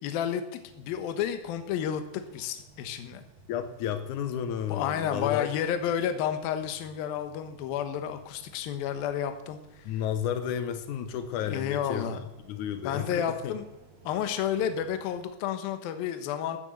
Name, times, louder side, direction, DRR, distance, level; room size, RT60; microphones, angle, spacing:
voice 1, 0.0-2.0 2.3-3.2 4.7-9.9 11.5-12.2 12.8-13.6 14.0-16.6, left 9 dB, 70° left, 8 dB, 2.7 m, -31 dB
sound 1, 0.6-15.2, right 3 dB, 45° right, 3.0 m, -55 dB
voice 2, 3.5-5.5 9.8-12.1 12.4-13.6, left 9 dB, 90° left, 9 dB, 1.7 m, -32 dB
13.5 x 9.8 x 7.9 m, 0.94 s
omnidirectional pair, 4.8 m